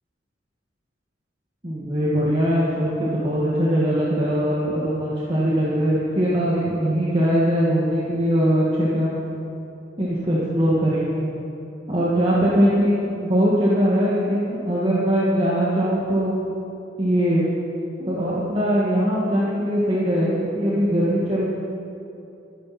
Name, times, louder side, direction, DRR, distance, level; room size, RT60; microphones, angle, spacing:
voice 1, 1.6-9.2 10.0-11.2 11.9-16.3 17.0-17.5 18.0-21.5, equal, 30° right, -7 dB, 1.9 m, -21 dB
21.5 x 10.5 x 4.4 m, 2.8 s
head